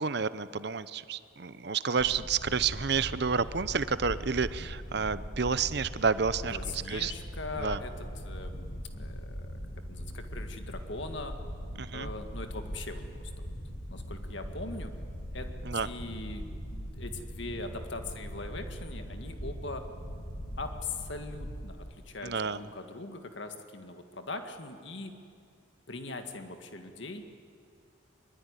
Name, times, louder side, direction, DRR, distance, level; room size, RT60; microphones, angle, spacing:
voice 1, 0.0-7.1 7.6-7.8 11.8-12.1 15.7-15.9 22.2-22.6, right 5 dB, 55° right, 15 dB, 0.7 m, -30 dB
sound 1, 2.0-21.6, equal, 80° left, 6.7 m, -40 dB
voice 2, 6.5-9.6 9.9-11.4 11.9-13.5 13.9-14.9 15.3-15.5 15.8-16.4 16.7-19.8 20.6-25.1 25.9-27.2, left 3 dB, 65° left, 6 dB, 2.0 m, -41 dB
23.0 x 22.0 x 9.9 m, 2.3 s
head